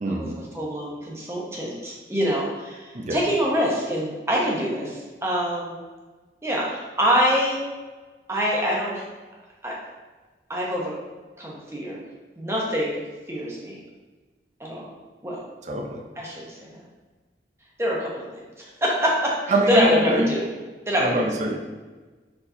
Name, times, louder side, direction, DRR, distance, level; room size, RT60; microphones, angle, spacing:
voice 1, 0.0-0.4 2.9-3.2 15.6-16.0 19.5-20.3 21.0-21.6, right 1 dB, 40° right, 1 dB, 0.5 m, -24 dB
voice 2, 0.5-5.8 6.4-7.6 8.3-9.0 9.6-9.8 10.5-10.9 11.4-12.0 12.4-13.0 13.3-13.8 14.6-14.9 15.2-15.4 16.2-16.8 17.8-18.4 18.8-20.5 20.9-21.3, equal, 15° right, -3 dB, 0.8 m, -25 dB
4.4 x 4.1 x 2.7 m, 1.3 s
head